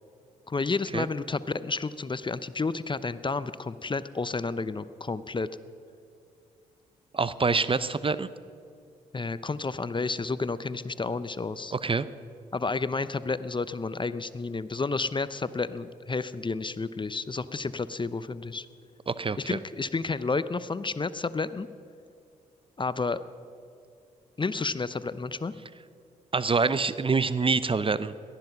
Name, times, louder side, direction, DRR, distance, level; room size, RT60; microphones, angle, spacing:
voice 1, 0.5-5.5 9.1-11.7 12.5-18.7 19.5-21.7 22.8-23.2 24.4-25.5, left 4 dB, 25° left, 15 dB, 0.7 m, -31 dB
voice 2, 7.1-8.3 11.7-12.1 19.1-19.6 26.3-28.1, right 4 dB, 30° right, 15 dB, 0.8 m, -26 dB
18.0 x 13.0 x 5.9 m, 2.5 s
hypercardioid pair, 45°, 18 cm